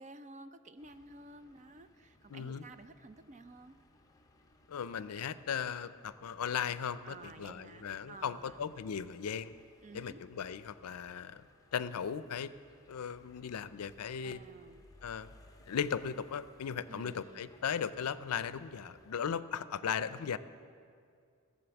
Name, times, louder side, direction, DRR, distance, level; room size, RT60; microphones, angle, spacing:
voice 1, 0.0-3.8 7.0-8.6 9.8-10.2 14.2-14.9 16.9-17.5, right 3 dB, 35° right, 11 dB, 0.5 m, -52 dB
sound 1, 0.8-19.2, left 1 dB, 15° left, 0.7 m, -64 dB
voice 2, 2.3-2.6 4.7-9.5 9.9-11.4 11.7-12.5 12.9-14.4 15.0-15.3 15.7-20.4, left 7 dB, 80° left, 15 dB, 0.4 m, -37 dB
15.5 x 7.5 x 7.0 m, 2.3 s
head